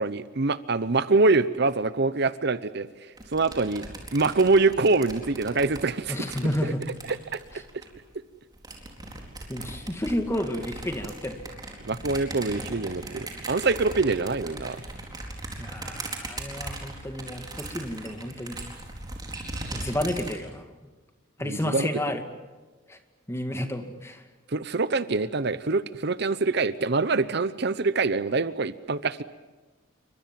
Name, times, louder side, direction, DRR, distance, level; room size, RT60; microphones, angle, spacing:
voice 1, 0.0-2.9 3.3-3.8 4.1-6.2 6.6-6.7 7.1-7.4 8.1-8.2 11.8-14.8 21.4-21.9 24.5-29.2, right 3 dB, 55° right, 15 dB, 0.8 m, -24 dB
sound 1, 3.2-8.0 8.5-20.3, right 2 dB, 20° right, 4.2 m, -39 dB
voice 2, 6.1-6.8 9.5-11.4 15.6-18.6 19.7-20.7 21.4-22.2 22.9-23.0 23.3-24.2, left 1 dB, 15° left, 6 dB, 2.1 m, -31 dB
28.5 x 24.5 x 7.6 m, 1.2 s
head